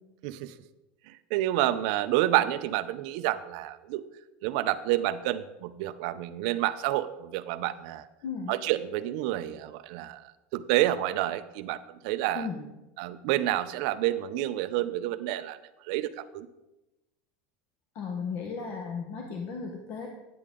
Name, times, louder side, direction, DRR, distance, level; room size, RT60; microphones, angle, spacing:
voice 1, 0.2-0.5 1.3-4.0 4.4-8.1 8.5-10.2 10.5-11.8 12.0-12.5 13.0-15.6 15.9-16.5, right 14 dB, 55° right, 12 dB, 0.5 m, -29 dB
voice 2, 8.2-8.6 12.3-12.7 17.9-20.1, left 5 dB, 40° left, 2 dB, 0.9 m, -35 dB
9.4 x 8.5 x 3.7 m, 0.99 s
supercardioid pair, 165°, 5 cm